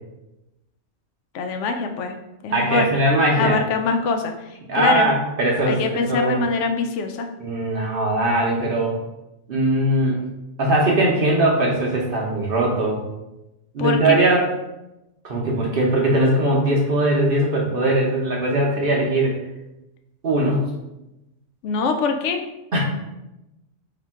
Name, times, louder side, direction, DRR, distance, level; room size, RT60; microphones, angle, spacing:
voice 1, 1.3-2.1 2.4-2.9 3.4-5.1 5.7-7.3 13.8-14.1 21.6-22.4, left 4 dB, 70° left, 5 dB, 0.9 m, -23 dB
voice 2, 2.5-3.6 4.7-6.4 7.4-8.9 9.5-10.2 10.6-13.0 13.7-14.5 15.2-19.4 20.2-20.7 22.7-22.8, right 1 dB, 50° right, -3 dB, 0.8 m, -20 dB
3.2 x 2.9 x 4.5 m, 0.94 s
omnidirectional pair, 1.3 m